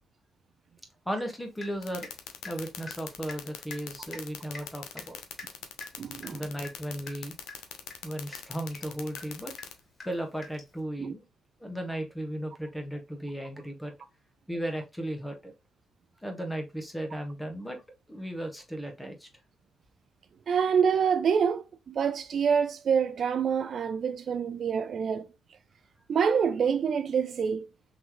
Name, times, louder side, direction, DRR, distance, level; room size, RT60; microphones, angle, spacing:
voice 1, 1.0-2.1 2.4-5.2 6.3-7.4 8.0-9.5 10.0-11.2 11.6-13.9 14.5-15.5 16.2-17.8 18.1-19.3, right 1 dB, 5° left, 1.3 m, -35 dB
Water tap faucet / Drip, 1.6-2.2 2.4-10.8, left 3 dB, 35° left, 2.7 m, -47 dB
sound 1, 1.8-9.7, left 11 dB, 90° left, 0.8 m, -40 dB
voice 2, 6.0-6.4 11.0-11.1 20.5-25.3 26.1-27.7, right 7 dB, 55° right, 0.4 m, -26 dB
3.9 x 3.1 x 3.0 m
cardioid pair, 90°, 0 cm